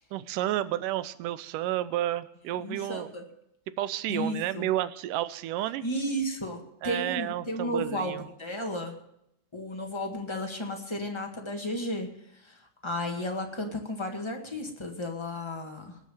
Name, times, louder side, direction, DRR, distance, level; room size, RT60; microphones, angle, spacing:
voice 1, 0.1-3.1 3.8-5.8 6.8-8.3, right 13 dB, 85° right, 15 dB, 2.3 m, -31 dB
voice 2, 2.6-3.2 4.1-4.7 5.8-9.0 9.5-12.1 12.3-16.0, equal, 15° left, 2 dB, 0.9 m, -33 dB
20.0 x 7.7 x 7.0 m, 0.76 s
omnidirectional pair, 3.7 m